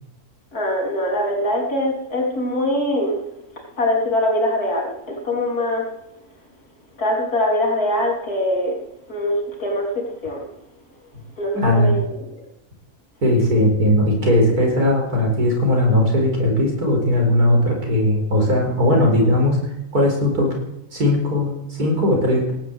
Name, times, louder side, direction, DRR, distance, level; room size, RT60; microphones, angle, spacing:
voice 1, 0.5-3.2 3.8-5.9 7.0-8.8 9.1-10.4 11.4-12.3, left 1 dB, 80° left, 0 dB, 4.0 m, -22 dB
voice 2, 11.5-12.0 13.2-19.6 19.9-20.5 20.9-22.5, left 1 dB, 85° right, 0 dB, 5.1 m, -18 dB
18.0 x 7.7 x 8.2 m, 0.85 s
omnidirectional pair, 1.6 m